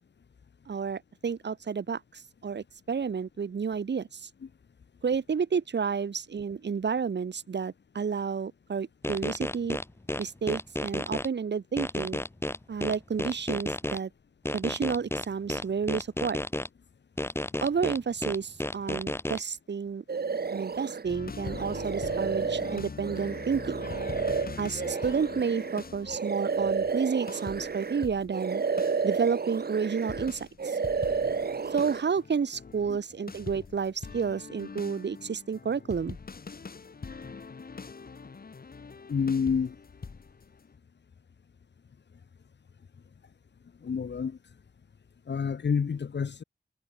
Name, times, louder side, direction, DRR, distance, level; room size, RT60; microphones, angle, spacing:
voice 1, 0.7-4.3 5.0-9.8 10.2-12.2 12.7-14.1 14.5-16.4 17.6-20.0 20.5-23.9 24.6-28.6 29.0-30.8 31.7-36.2, right 6 dB, 90° right, 4.6 m, -31 dB
sound 1, 9.0-11.3 11.8-14.0 14.5-16.7 17.2-19.4, left 1 dB, 15° left, 4.1 m, -32 dB
sound 2, 20.1-21.0 21.4-28.1 28.3-30.3 30.6-32.0, right 5 dB, 65° right, 3.4 m, -31 dB
sound 3, 21.0-28.4 28.8-29.1 30.1-40.6, left 4 dB, 60° left, 4.9 m, -43 dB
voice 2, 39.1-39.8 43.8-44.4 45.3-46.4, left 6 dB, 90° left, 3.9 m, -28 dB
wide cardioid pair, 110°, 18 cm